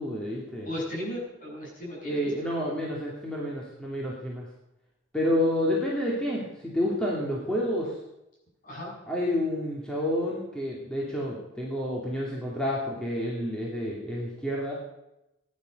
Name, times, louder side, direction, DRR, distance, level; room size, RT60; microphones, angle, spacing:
voice 1, 0.0-0.7 2.0-4.5 5.1-7.9 9.1-14.7, left 1 dB, 5° left, -4 dB, 2.8 m, -29 dB
voice 2, 0.6-2.3 8.6-8.9, equal, 40° left, -2 dB, 7.2 m, -35 dB
17.0 x 11.0 x 6.6 m, 0.89 s
head